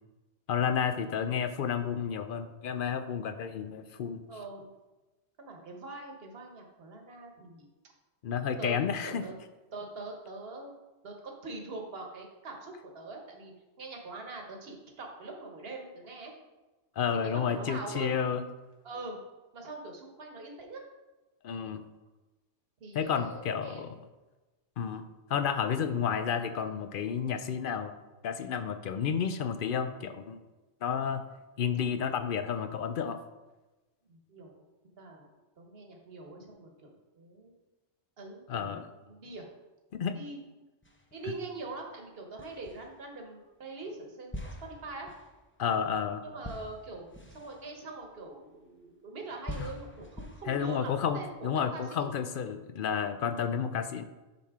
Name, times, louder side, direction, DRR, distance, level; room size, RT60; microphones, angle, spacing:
voice 1, 0.5-4.2 8.2-9.3 17.0-18.4 21.4-21.8 22.9-24.0 24.8-25.0 25.3-28.0 28.2-30.4 30.8-31.2 31.6-33.2 38.5-38.9 39.9-40.1 45.6-46.2 49.6-49.7 50.5-54.0, left 7 dB, 60° left, 10 dB, 0.6 m, -31 dB
voice 2, 1.0-1.4 4.3-4.7 5.4-7.7 8.3-8.8 9.0-9.3 9.7-10.7 11.0-13.5 13.8-16.3 17.3-18.2 18.8-19.2 19.5-20.8 22.8-23.9 34.1-34.5 35.0-35.3 35.6-37.5 38.2-39.5 39.9-40.4 41.1-45.1 46.2-52.1, right 3 dB, 60° right, 2 dB, 1.4 m, -43 dB
sound 1, 40.8-41.6 42.4-43.3 44.3-48.8 49.4-51.4, left 1 dB, 15° left, 0.6 m, -46 dB
7.9 x 5.9 x 3.6 m, 1.1 s
omnidirectional pair, 1.2 m